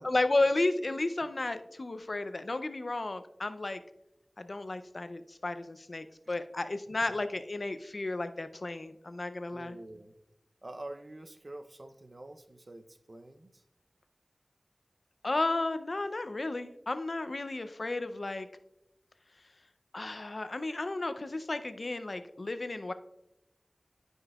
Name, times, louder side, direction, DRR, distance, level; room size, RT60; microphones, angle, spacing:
voice 1, 0.0-3.8 4.4-9.8 15.2-18.5 19.9-22.9, left 2 dB, 65° left, 10 dB, 0.5 m, -33 dB
voice 2, 6.9-7.2 9.5-10.1 10.6-13.6, right 1 dB, 55° right, 9 dB, 0.6 m, -47 dB
13.0 x 5.4 x 2.3 m, 0.87 s
wide cardioid pair, 50°, 0 cm